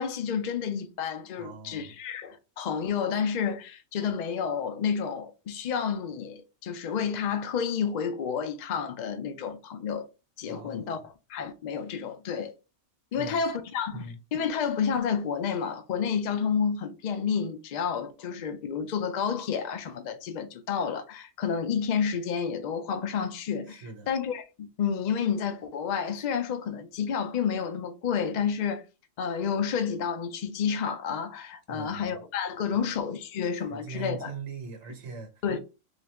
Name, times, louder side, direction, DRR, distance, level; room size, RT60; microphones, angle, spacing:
voice 1, 0.0-10.1 10.4-12.5 13.1-28.8 29.2-34.3 35.4-35.6, left 7 dB, 80° left, 0.4 m, -30 dB
voice 2, 1.4-1.9 10.5-10.9 13.1-13.4 13.9-14.2 23.7-24.1 31.7-32.1 32.7-32.9 33.7-35.3, right 5 dB, 60° right, 1.1 m, -41 dB
3.9 x 2.4 x 3.2 m
omnidirectional pair, 1.4 m